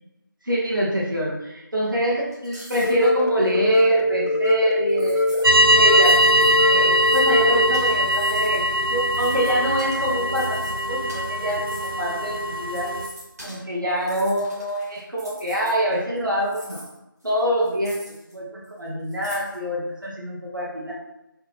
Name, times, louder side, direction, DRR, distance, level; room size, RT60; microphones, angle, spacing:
voice 1, 0.4-5.3 5.7-10.6 10.9-13.0 13.4-16.8 17.2-18.0 18.3-20.9, equal, 65° right, -5 dB, 0.9 m, -25 dB
sound 1, 2.3-3.1 3.4-3.5 4.9-5.5 5.9-7.4 7.7-8.6 9.0-12.2 12.6-13.6 14.0-16.2 16.4-18.3 18.6-18.7 19.1-19.6, equal, 45° right, 1.3 m, -44 dB
sound 2, 2.8-7.8, left 2 dB, 50° left, 0.4 m, -23 dB
sound 3, 5.4-13.1, equal, 80° right, 0.4 m, -21 dB
3.7 x 2.1 x 2.8 m, 0.91 s
figure-of-eight pair, 175°, 12 cm